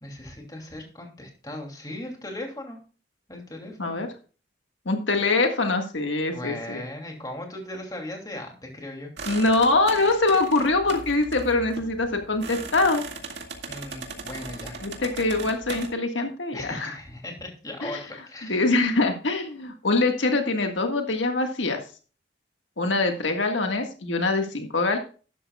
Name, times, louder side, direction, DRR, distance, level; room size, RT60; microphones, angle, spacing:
voice 1, 0.0-2.8 3.3-4.0 6.3-9.1 13.7-14.8 16.5-18.6, left 1 dB, 20° left, 1 dB, 2.8 m, -38 dB
voice 2, 4.9-6.8 9.3-13.0 14.8-16.9 17.8-18.0 18.4-21.8 22.8-25.0, left 3 dB, 85° left, 4 dB, 1.7 m, -24 dB
sound 1, 9.2-15.9, right 3 dB, 70° right, 2.2 m, -38 dB
12.5 x 11.0 x 2.4 m, 0.36 s
head